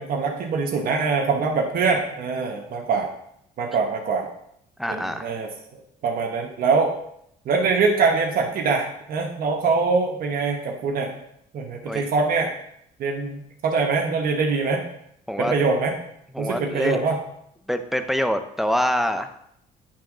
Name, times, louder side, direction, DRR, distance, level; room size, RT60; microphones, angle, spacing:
voice 1, 0.0-3.1 3.6-4.3 4.9-5.5 6.0-6.9 7.4-11.1 11.5-12.5 13.0-14.8 15.4-15.9 16.4-17.2, right 4 dB, 60° right, 1 dB, 1.1 m, -23 dB
voice 2, 4.8-5.3 11.9-12.0 15.3-15.5 16.3-17.0 17.7-19.3, equal, ahead, 8 dB, 0.5 m, -25 dB
10.0 x 3.6 x 4.9 m, 0.75 s
cardioid pair, 110°, 17 cm